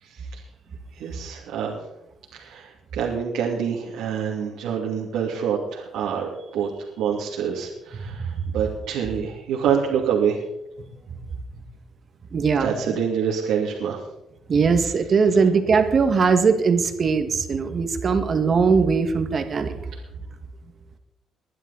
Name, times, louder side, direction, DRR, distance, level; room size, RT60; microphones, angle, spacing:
voice 1, 0.0-0.4 1.0-1.8 2.3-10.4 12.6-14.0, right 7 dB, 90° right, -3 dB, 2.7 m, -26 dB
voice 2, 12.3-12.7 14.5-19.7, right 5 dB, 45° right, 7 dB, 2.1 m, -20 dB
22.0 x 11.0 x 4.2 m, 0.88 s
cardioid pair, 90°, 0 cm